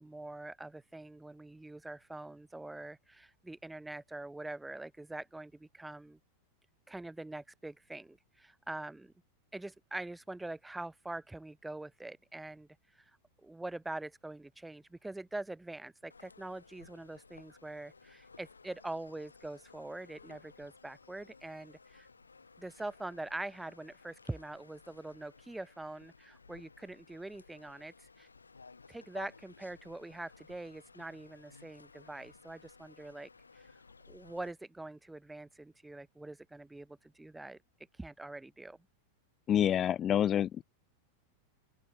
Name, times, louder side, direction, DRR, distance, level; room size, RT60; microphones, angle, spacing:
voice 1, 0.0-6.2 6.9-9.1 9.5-13.0 13.4-22.1 22.6-28.3 28.9-33.3 33.5-33.6 34.1-37.6 38.0-38.8, right 2 dB, 5° right, 4.1 m, -44 dB
sound 1, 16.1-34.5, left 4 dB, 75° left, 6.7 m, -58 dB
voice 2, 39.5-40.6, left 10 dB, 25° left, 0.5 m, -27 dB
open air
figure-of-eight pair, 90°, 0 cm